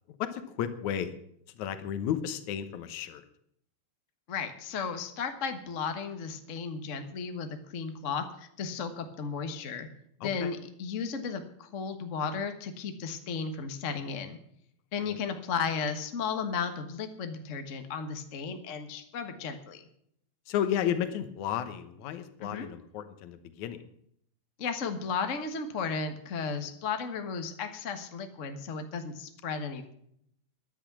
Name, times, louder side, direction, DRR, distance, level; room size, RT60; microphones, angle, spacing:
voice 1, 0.2-1.1 1.6-3.2 10.2-10.5 15.1-15.2 20.5-23.8, left 9 dB, 80° left, 11 dB, 2.4 m, -33 dB
voice 2, 4.3-9.9 10.2-14.4 14.9-19.9 22.4-22.7 24.6-29.9, left 5 dB, 45° left, 7 dB, 1.0 m, -34 dB
14.0 x 10.5 x 6.1 m, 0.70 s
omnidirectional pair, 3.4 m